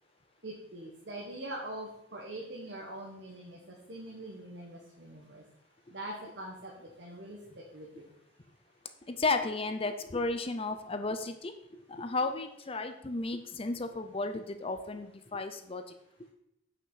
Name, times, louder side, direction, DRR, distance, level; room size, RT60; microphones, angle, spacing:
voice 1, 0.4-5.4 5.9-8.1, right 1 dB, 65° right, -2 dB, 1.6 m, -43 dB
voice 2, 9.2-11.5 11.9-15.8, left 3 dB, 30° left, 8 dB, 0.7 m, -33 dB
8.9 x 5.9 x 5.7 m, 0.79 s
head